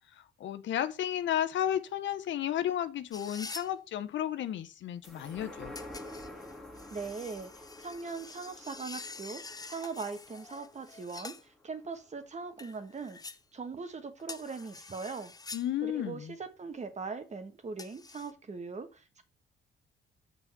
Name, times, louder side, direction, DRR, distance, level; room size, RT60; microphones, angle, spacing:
voice 1, 0.2-5.7 15.5-16.3, left 11 dB, 70° left, 0.8 m, -33 dB
sound 1, 3.1-3.7 5.8-11.4 12.6-13.4 14.2-15.7 17.8-18.3, left 4 dB, 20° left, 0.6 m, -46 dB
sound 2, 5.0-11.8 12.2-12.3, left 1 dB, ahead, 2.0 m, -49 dB
voice 2, 6.9-13.2 13.5-15.3 15.8-19.2, right 4 dB, 35° right, 1.4 m, -40 dB
7.0 x 4.1 x 5.9 m
cardioid pair, 90°, 20 cm